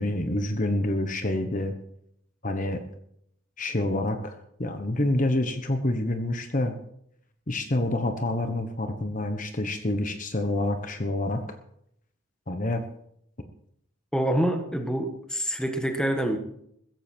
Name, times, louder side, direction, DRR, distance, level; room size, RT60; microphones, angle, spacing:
voice 1, 0.0-1.7 2.4-2.8 3.6-6.8 7.5-11.4 12.5-12.8, left 1 dB, 40° left, 7 dB, 1.2 m, -27 dB
voice 2, 14.1-16.4, right 1 dB, 5° left, 5 dB, 1.7 m, -26 dB
16.0 x 14.5 x 4.6 m, 0.71 s
head